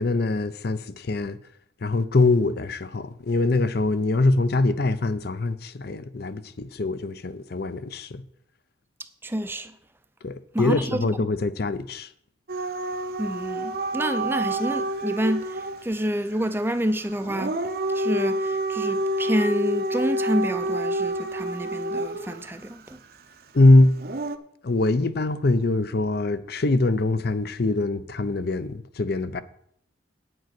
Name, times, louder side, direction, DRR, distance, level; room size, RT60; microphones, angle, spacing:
voice 1, 0.0-1.4 1.8-8.2 10.2-12.1 23.5-24.0 24.6-29.4, left 2 dB, 50° left, 0.6 m, -23 dB
voice 2, 9.2-9.7 10.5-11.1 13.2-17.6 17.9-23.0, equal, 10° right, 0.5 m, -28 dB
Dog / Siren, 12.5-15.8 17.2-22.4 24.0-24.4, right 1 dB, 50° right, 0.7 m, -28 dB
9.1 x 7.8 x 6.0 m
head